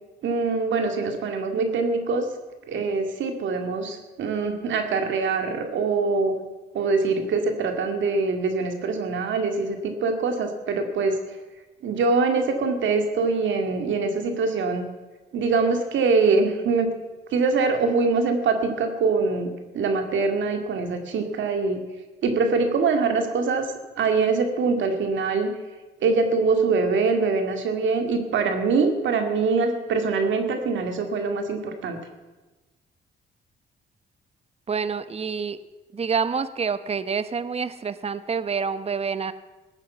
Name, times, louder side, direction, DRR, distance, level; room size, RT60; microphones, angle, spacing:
voice 1, 0.2-2.3 2.7-6.4 6.7-11.2 11.8-14.9 15.3-16.9 17.3-21.8 22.2-23.7 24.0-25.5 26.0-32.0, right 4 dB, 70° right, 6 dB, 2.2 m, -23 dB
voice 2, 34.7-35.6 35.9-39.3, right 5 dB, 30° right, 14 dB, 0.9 m, -27 dB
15.5 x 9.0 x 7.3 m, 1.2 s
cardioid pair, 90°, 20 cm